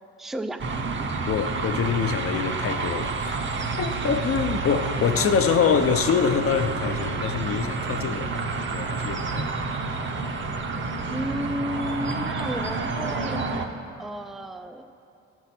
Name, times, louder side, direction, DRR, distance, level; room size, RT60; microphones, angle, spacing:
voice 1, 0.2-0.6 1.0-1.1 11.1-13.4 14.0-14.8, equal, ahead, 0.3 m, -33 dB
sound 1, 0.6-13.7, right 3 dB, 40° right, 0.7 m, -29 dB
voice 2, 1.3-3.3 3.8-9.6, left 6 dB, 50° left, 0.6 m, -25 dB
12.5 x 4.5 x 5.9 m
cardioid pair, 90°, 30 cm